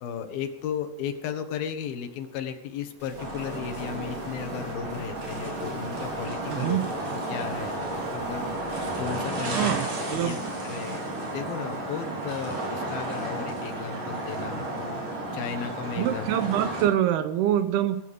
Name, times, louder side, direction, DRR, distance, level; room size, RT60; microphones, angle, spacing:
voice 1, 0.0-6.8 7.1-8.5 9.0-9.8 10.1-10.4 10.6-16.3, left 7 dB, 65° left, 7 dB, 3.2 m, -35 dB
sound 1, 3.0-10.5, left 1 dB, 10° left, 6.8 m, -46 dB
sound 2, 3.2-16.8, right 1 dB, 50° right, 6.1 m, -33 dB
voice 2, 6.5-6.9 9.5-10.4 16.0-18.0, right 11 dB, 80° right, 11 dB, 2.6 m, -25 dB
15.5 x 15.5 x 5.4 m, 0.86 s
omnidirectional pair, 4.8 m